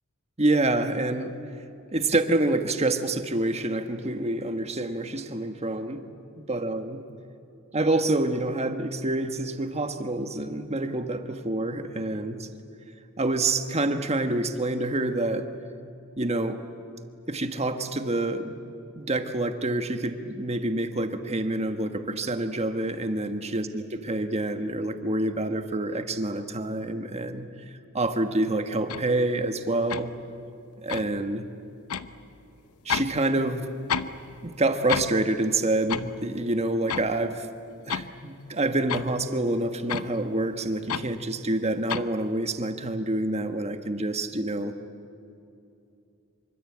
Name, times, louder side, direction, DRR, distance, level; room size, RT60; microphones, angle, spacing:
voice 1, 0.4-1.3 1.9-6.1 6.4-7.0 7.7-12.5 13.2-15.5 16.2-16.6 17.3-18.5 18.9-27.5 27.9-30.1 30.8-31.5 32.8-33.7 34.4-37.5 37.8-44.7, right 2 dB, 30° right, 7 dB, 1.4 m, -27 dB
sound 1, 28.9-29.1 29.9-30.1 30.9-31.1 31.9-32.1 32.9-33.2 33.4-34.2 34.5-34.6 34.9-35.2 35.9-36.1 36.9-37.1 37.7-38.1 38.9-39.1 39.9-40.1 40.9-41.1 41.9-42.1, left 7 dB, 75° left, 0.8 m, -30 dB
25.5 x 24.5 x 8.7 m, 2.7 s
head